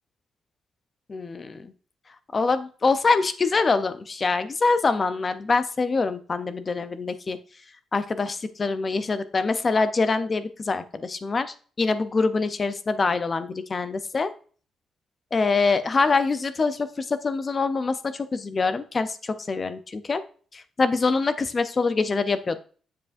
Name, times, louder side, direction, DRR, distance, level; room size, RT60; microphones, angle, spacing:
voice 1, 1.1-1.7 2.3-7.4 7.9-14.3 15.3-20.2 20.5-22.6, left 4 dB, 25° left, 12 dB, 0.5 m, -24 dB
7.4 x 7.2 x 2.5 m, 0.42 s
cardioid pair, 170°, 0 cm